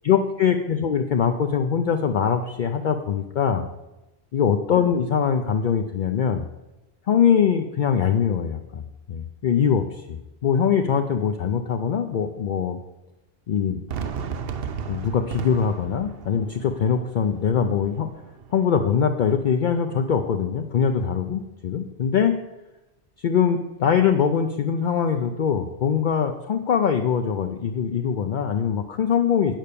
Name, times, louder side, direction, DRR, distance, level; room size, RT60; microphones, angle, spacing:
voice 1, 0.0-3.7 4.3-6.5 7.1-8.8 9.1-12.8 13.5-13.8 14.9-18.1 18.5-22.3 23.2-29.5, left 7 dB, 55° left, 5 dB, 0.6 m, -22 dB
Fireworks, 13.9-18.9, right 6 dB, 65° right, 0.9 m, -35 dB
9.0 x 5.5 x 6.7 m, 0.98 s
omnidirectional pair, 1.1 m